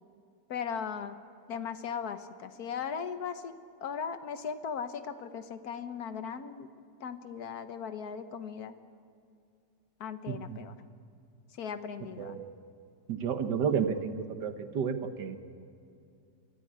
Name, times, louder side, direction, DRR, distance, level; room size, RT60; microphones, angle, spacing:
voice 1, 0.5-1.1 1.5-3.5 3.8-6.7 7.0-8.7 10.0-10.7 11.6-12.4, left 7 dB, 60° left, 10 dB, 1.5 m, -38 dB
voice 2, 10.3-10.6 12.2-12.4 13.1-15.4, right 7 dB, 70° right, 8 dB, 1.8 m, -31 dB
24.5 x 14.0 x 9.9 m, 2.4 s
omnidirectional pair, 1.9 m